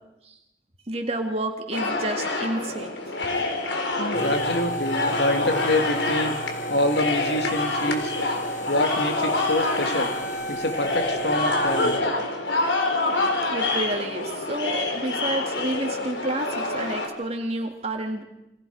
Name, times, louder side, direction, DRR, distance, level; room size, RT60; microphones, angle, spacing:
voice 1, 0.9-3.2 13.1-18.2, right 1 dB, 35° right, 3 dB, 3.1 m, -30 dB
sound 1, 1.7-17.1, left 2 dB, 85° left, 3.9 m, -27 dB
voice 2, 4.0-6.4 6.7-8.1 8.7-10.1 10.5-12.0, left 1 dB, 65° left, 5 dB, 3.0 m, -26 dB
sound 2, 4.1-12.0, right 1 dB, 45° left, 2.0 m, -33 dB
28.5 x 26.0 x 5.2 m, 0.92 s
head